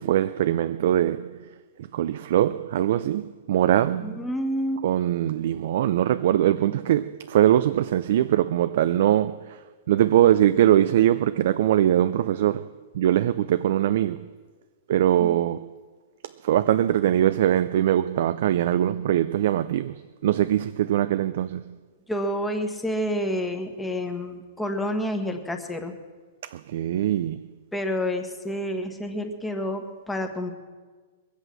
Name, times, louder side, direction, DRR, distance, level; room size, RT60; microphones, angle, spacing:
voice 1, 0.0-1.5 1.9-4.3 4.8-9.6 9.9-12.7 12.9-14.3 14.9-15.7 16.2-21.8 26.4-27.4, right 11 dB, 65° right, 0.4 m, -22 dB
voice 2, 4.0-4.9 15.2-15.4 22.1-25.9 27.7-30.5, equal, 5° left, 1.5 m, -29 dB
20.5 x 8.2 x 7.6 m
hypercardioid pair, 135°, 0 cm